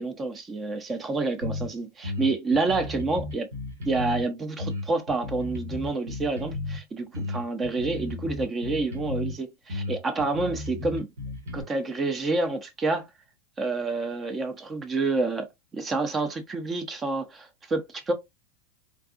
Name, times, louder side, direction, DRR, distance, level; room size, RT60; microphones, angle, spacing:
voice 1, 0.0-3.5 3.9-11.1 11.5-13.0 13.6-15.5 15.7-18.1, right 3 dB, 20° right, 0.6 m, -28 dB
sound 1, 1.4-1.7 2.0-4.2 4.6-6.8 7.1-9.3 9.7-11.6, left 3 dB, 85° right, 1.5 m, -34 dB
3.5 x 2.2 x 2.4 m
hypercardioid pair, 125°, 0 cm